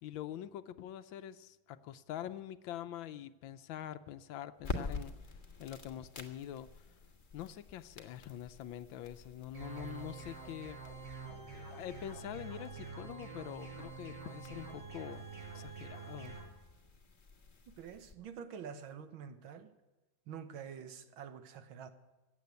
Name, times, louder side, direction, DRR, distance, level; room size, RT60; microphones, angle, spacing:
voice 1, 0.0-5.2 5.6-6.9 7.3-10.8 11.5-15.3 15.5-16.4, left 11 dB, 75° left, 12 dB, 1.4 m, -45 dB
sound 1, 4.6-18.1, left 4 dB, 30° left, 1.3 m, -48 dB
sound 2, 9.5-16.4, right 4 dB, 45° right, 8.0 m, -47 dB
voice 2, 17.8-19.8 20.3-21.9, right 7 dB, 80° right, 10 dB, 1.8 m, -47 dB
15.5 x 8.4 x 9.4 m, 1.1 s
omnidirectional pair, 2.2 m